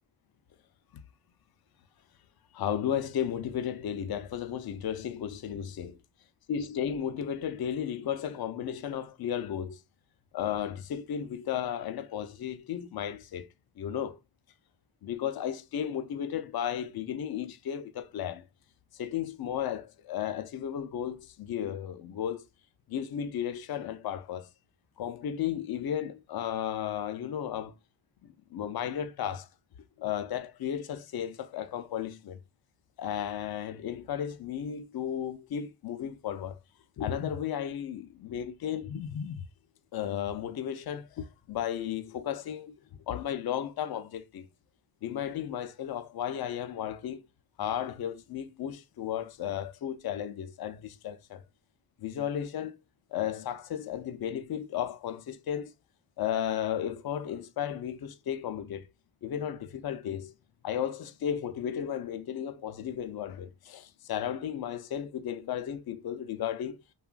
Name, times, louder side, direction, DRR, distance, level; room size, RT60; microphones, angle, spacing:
voice 1, 2.5-6.0 6.5-9.8 10.3-13.5 13.8-14.2 15.0-18.4 18.9-22.4 22.9-24.5 25.0-27.7 28.2-29.5 30.0-32.4 33.0-36.6 37.0-39.4 39.9-42.7 43.1-44.5 45.0-47.3 47.6-51.4 52.0-52.8 53.1-55.7 56.2-58.9 59.2-60.3 60.6-66.8, left 9 dB, 50° left, 0.5 m, -34 dB
3.0 x 2.3 x 2.3 m
cardioid pair, 55°, 49 cm